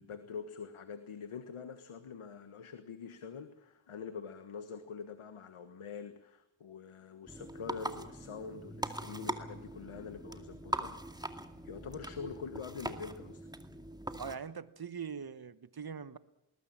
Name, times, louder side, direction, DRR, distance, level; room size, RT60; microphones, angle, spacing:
voice 1, 0.0-11.0 11.6-13.5, left 6 dB, 85° left, 9 dB, 1.5 m, -45 dB
sound 1, 7.3-14.4, right 1 dB, 10° right, 2.2 m, -41 dB
voice 2, 14.2-16.2, right 6 dB, 45° right, 14 dB, 1.3 m, -42 dB
20.0 x 20.0 x 7.5 m, 0.89 s
cardioid pair, 60°, 49 cm